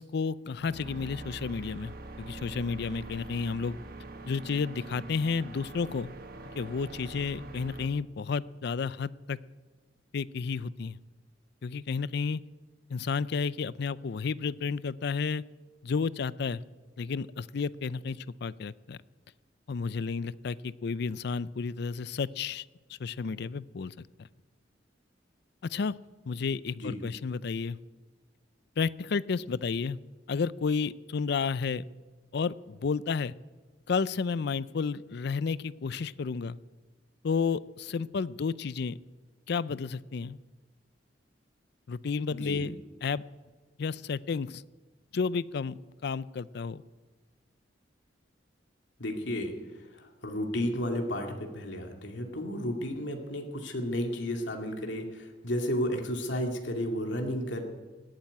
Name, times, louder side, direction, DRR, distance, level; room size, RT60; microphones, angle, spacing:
voice 1, 0.0-3.8 4.2-6.1 6.6-9.4 10.1-11.0 11.6-12.4 12.9-15.4 15.8-16.6 17.0-19.0 19.7-24.3 25.6-25.9 26.3-27.8 28.8-30.0 30.3-31.9 32.3-33.3 33.9-36.6 37.2-39.0 39.5-40.4 41.9-43.2 43.8-44.6 45.1-46.8, left 5 dB, 65° left, 19 dB, 0.4 m, -32 dB
sound 1, 0.6-7.9, right 2 dB, 55° right, 1.2 m, -44 dB
voice 2, 42.3-42.6 49.0-57.6, equal, 85° left, 3 dB, 2.2 m, -33 dB
17.0 x 9.0 x 9.4 m, 1.3 s
head